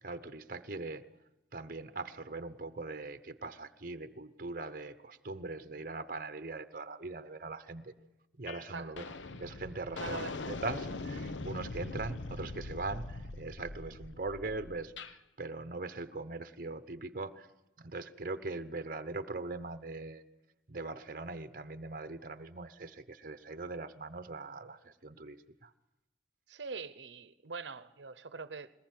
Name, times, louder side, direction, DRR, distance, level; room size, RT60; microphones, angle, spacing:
voice 1, 0.0-1.1 1.5-7.9 8.4-9.0 9.4-17.5 17.8-20.2 20.7-25.7, right 3 dB, 45° right, 0.9 m, -41 dB
sound 1, 8.5-8.7 9.0-15.2, left 3 dB, 90° left, 1.0 m, -42 dB
voice 2, 9.9-10.3 26.5-28.7, right 4 dB, 75° right, 0.8 m, -43 dB
22.0 x 19.5 x 9.3 m
head